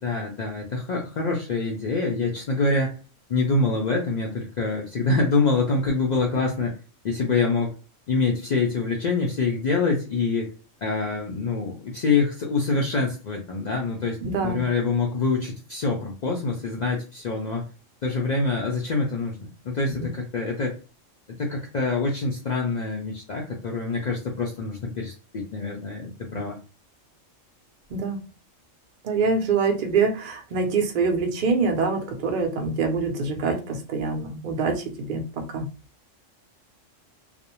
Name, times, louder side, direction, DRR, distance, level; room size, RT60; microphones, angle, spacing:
voice 1, 0.0-3.0 3.3-6.8 7.0-7.7 8.1-10.5 10.8-17.7 18.0-20.8 21.4-26.6, left 3 dB, 80° left, -1 dB, 0.4 m, -25 dB
voice 2, 14.2-14.6 20.0-20.1 27.9-28.2 29.0-35.2 35.5-35.7, right 4 dB, 50° right, 3 dB, 0.7 m, -25 dB
2.5 x 2.0 x 2.9 m, 0.33 s
omnidirectional pair, 1.3 m